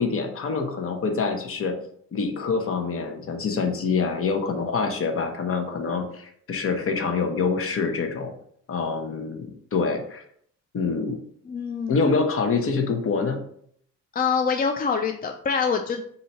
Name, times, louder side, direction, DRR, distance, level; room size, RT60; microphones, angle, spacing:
voice 1, 0.0-1.8 2.1-8.3 8.7-10.2 10.7-11.2 11.9-13.4, left 4 dB, 50° left, 4 dB, 1.0 m, -26 dB
voice 2, 11.5-12.1 14.1-16.0, left 5 dB, 30° left, 5 dB, 0.4 m, -25 dB
4.1 x 2.7 x 4.5 m, 0.65 s
cardioid pair, 90°, 30 cm